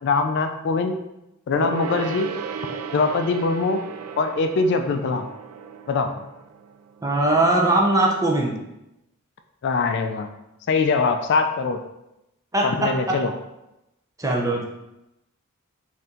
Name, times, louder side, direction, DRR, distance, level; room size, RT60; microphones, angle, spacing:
voice 1, 0.0-1.0 1.5-2.3 2.9-3.8 4.2-5.3 5.9-6.1 9.6-10.3 10.7-11.8 12.6-13.3, left 4 dB, 55° left, 6 dB, 0.3 m, -22 dB
Gong, 1.5-7.4 7.7-7.8, right 6 dB, 80° right, 0.3 m, -34 dB
voice 2, 7.0-8.5 12.5-13.2 14.2-14.6, right 2 dB, 15° right, -1 dB, 0.6 m, -20 dB
4.3 x 2.6 x 3.7 m, 0.90 s
head